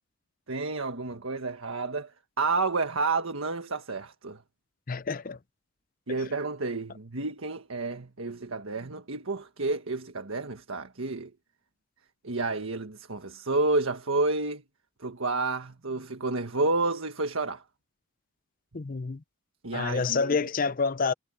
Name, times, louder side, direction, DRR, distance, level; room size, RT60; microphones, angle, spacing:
voice 1, 0.5-2.1 2.4-4.4 6.1-11.3 12.2-14.6 15.0-17.6 19.6-20.3, right 3 dB, 80° right, 1.5 m, -30 dB
voice 2, 4.9-5.4 6.1-6.2 18.7-19.2 19.7-21.1, left 4 dB, 40° left, 0.6 m, -28 dB
head